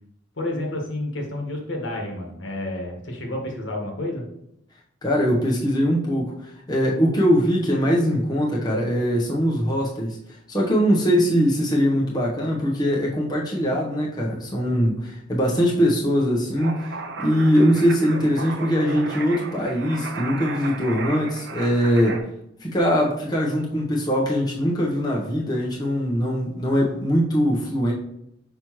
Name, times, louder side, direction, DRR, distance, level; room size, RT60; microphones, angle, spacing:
voice 1, 0.4-4.3, left 1 dB, 70° left, 1 dB, 1.5 m, -30 dB
voice 2, 5.0-10.2 10.5-16.7 17.2-22.2 22.6-27.9, equal, 20° left, -3 dB, 1.0 m, -21 dB
sound 1, 16.6-22.2, right 3 dB, 60° right, 0.8 m, -35 dB
6.0 x 5.0 x 3.1 m, 0.77 s
head